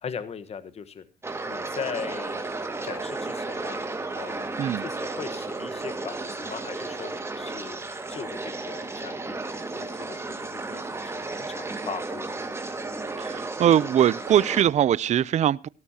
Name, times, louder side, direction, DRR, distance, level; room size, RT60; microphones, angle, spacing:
voice 1, 0.0-1.0 1.5-2.5 2.8-3.8 4.1-7.8 8.1-10.2 10.5-12.4, left 6 dB, 40° left, 1.3 m, -39 dB
sound 1, 1.2-14.6, right 3 dB, 15° right, 2.0 m, -33 dB
voice 2, 13.2-15.7, right 10 dB, 45° right, 0.5 m, -21 dB
18.0 x 13.0 x 2.9 m
cardioid pair, 110°, 17 cm